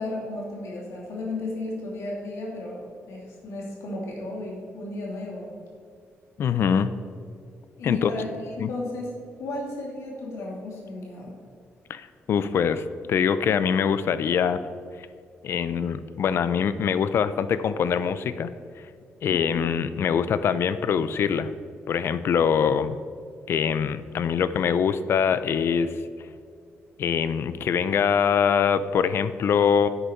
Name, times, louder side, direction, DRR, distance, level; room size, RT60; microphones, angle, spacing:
voice 1, 0.0-5.5 7.8-11.4 19.3-19.7, left 2 dB, 85° left, -2 dB, 2.6 m, -34 dB
voice 2, 6.4-6.9 7.8-8.1 8.6-8.7 11.9-14.6 15.4-18.5 19.2-21.5 21.9-23.0 23.5-25.9 27.0-29.9, left 7 dB, 60° left, 13 dB, 0.5 m, -23 dB
10.5 x 8.4 x 4.5 m, 2.2 s
cardioid pair, 140°, 5 cm